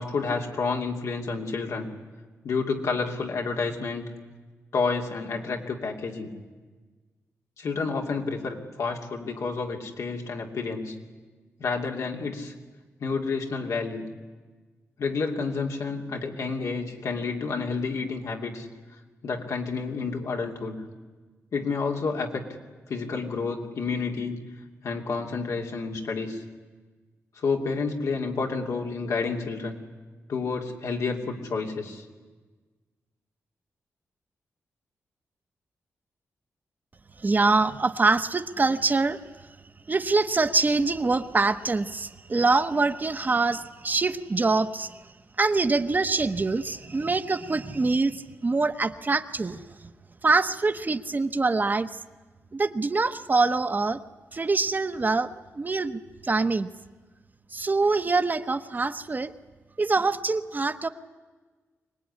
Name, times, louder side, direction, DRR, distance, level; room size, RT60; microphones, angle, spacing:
voice 1, 0.0-1.9 2.4-4.0 4.7-6.3 7.6-11.0 11.6-12.5 13.0-14.1 15.0-18.7 19.2-20.8 21.5-22.4 22.9-24.4 24.8-26.4 27.4-29.8 30.3-32.0, left 4 dB, 75° left, 2 dB, 2.8 m, -29 dB
voice 2, 37.2-39.2 39.9-45.0 45.4-49.9 50.2-52.0 52.5-54.0 54.3-56.7 57.5-59.3 59.8-60.9, right 3 dB, 35° right, 10 dB, 1.0 m, -24 dB
24.0 x 19.0 x 9.9 m, 1.3 s
cardioid pair, 75°, 5 cm